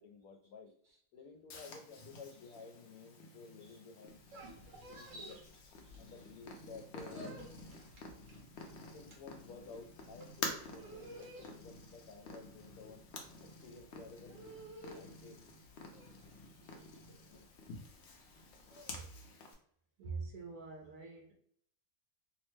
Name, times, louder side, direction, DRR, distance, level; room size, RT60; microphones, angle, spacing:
voice 1, 0.0-0.7 1.1-4.2 4.9-5.4 6.0-7.5 8.9-13.0 13.4-14.5 14.7-15.4 17.0-17.5, left 4 dB, 80° left, 4 dB, 1.1 m, -53 dB
Purr, 1.5-19.5, left 3 dB, 65° left, 0.8 m, -49 dB
sound 1, 4.1-6.4 6.7-19.0, right 1 dB, 65° right, 1.1 m, -54 dB
voice 2, 5.8-6.1 18.9-19.1 20.0-21.3, right 4 dB, 90° right, -1 dB, 1.1 m, -46 dB
3.0 x 2.1 x 3.1 m, 0.64 s
omnidirectional pair, 1.5 m